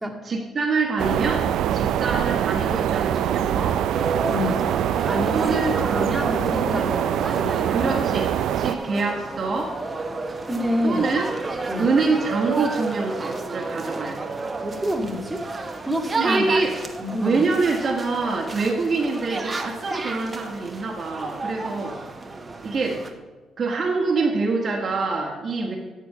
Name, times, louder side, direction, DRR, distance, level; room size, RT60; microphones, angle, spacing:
voice 1, 0.2-1.5 1.7-3.8 5.3-5.7 7.7-8.3 8.5-9.8 10.8-11.3 11.8-14.3 16.2-16.7 17.2-22.0 22.6-23.1 23.6-25.8, right 3 dB, 50° right, 0 dB, 1.5 m, -25 dB
sound 1, 1.0-8.8, right 10 dB, 80° right, 0.4 m, -24 dB
sound 2, 3.9-23.1, right 3 dB, 30° right, 1.1 m, -32 dB
voice 2, 4.3-4.7 5.1-5.5 5.8-8.0 10.5-11.1 11.7-11.9 14.6-15.5 15.9-16.6 17.0-17.4, left 1 dB, 5° right, -3 dB, 2.1 m, -28 dB
13.0 x 4.5 x 6.6 m, 1.3 s
cardioid pair, 90°, 0 cm